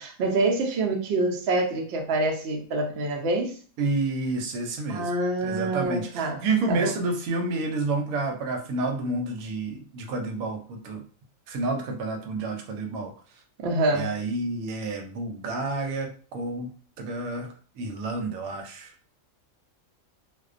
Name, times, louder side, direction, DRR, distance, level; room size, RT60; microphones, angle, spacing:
voice 1, 0.0-3.6 4.9-6.9 13.6-14.1, right 2 dB, 60° right, 0.7 m, -26 dB
voice 2, 3.8-5.1 5.4-11.0 11.5-13.1 13.9-16.7 17.0-17.5 17.8-18.9, right 3 dB, 85° right, 1.0 m, -29 dB
2.4 x 2.1 x 2.4 m
omnidirectional pair, 1.5 m